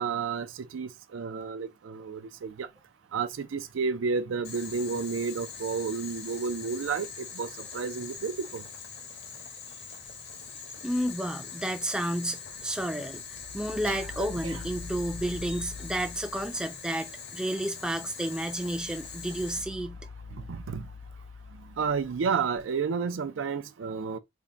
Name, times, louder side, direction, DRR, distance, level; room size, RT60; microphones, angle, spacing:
voice 1, 0.0-2.7 3.1-7.5 7.7-8.6 13.8-14.6 20.5-20.9 21.8-24.2, right 5 dB, 80° right, 0.4 m, -31 dB
Boiling, 4.4-19.6, left 6 dB, 60° left, 0.9 m, -43 dB
voice 2, 10.8-13.2 13.5-20.0, right 1 dB, 5° right, 0.4 m, -31 dB
sound 1, 13.2-16.9 18.2-22.6, left 4 dB, 90° left, 1.5 m, -45 dB
3.6 x 2.1 x 3.8 m
head